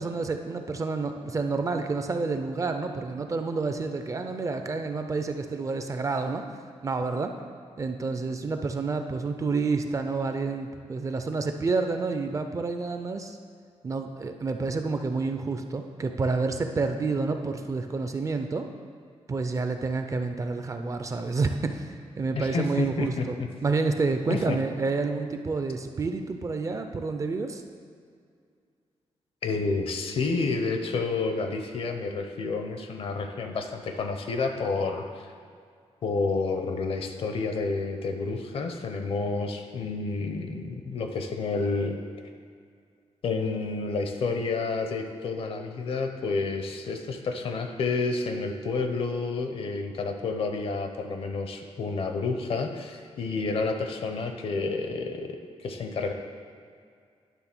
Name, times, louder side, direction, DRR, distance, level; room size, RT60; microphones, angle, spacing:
voice 1, 0.0-6.4 6.8-7.3 7.8-13.4 13.8-18.7 19.3-23.4 23.6-27.6, right 4 dB, 30° right, 6 dB, 0.4 m, -29 dB
voice 2, 22.4-23.3 24.3-24.6 29.4-35.3 36.0-42.0 43.2-56.1, left 4 dB, 60° left, 6 dB, 0.7 m, -30 dB
10.0 x 3.6 x 6.0 m, 2.2 s
wide cardioid pair, 170°, 11 cm